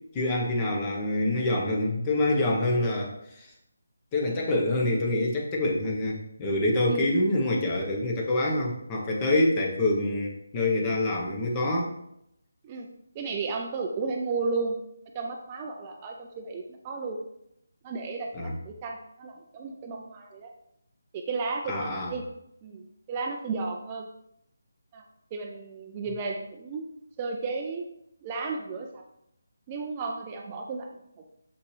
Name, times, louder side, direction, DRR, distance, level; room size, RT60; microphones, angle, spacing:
voice 1, 0.1-3.5 4.1-11.9 18.3-18.5 21.7-22.1, left 1 dB, 20° left, -1 dB, 1.3 m, -26 dB
voice 2, 13.1-14.8 15.1-17.2 17.8-20.5 21.1-22.2 22.6-24.1 24.9-25.0 25.3-26.9 27.2-27.9 28.2-29.0 29.7-31.0, right 4 dB, 25° right, 2 dB, 0.6 m, -33 dB
6.9 x 5.7 x 3.4 m, 0.78 s
figure-of-eight pair, 155°, 0 cm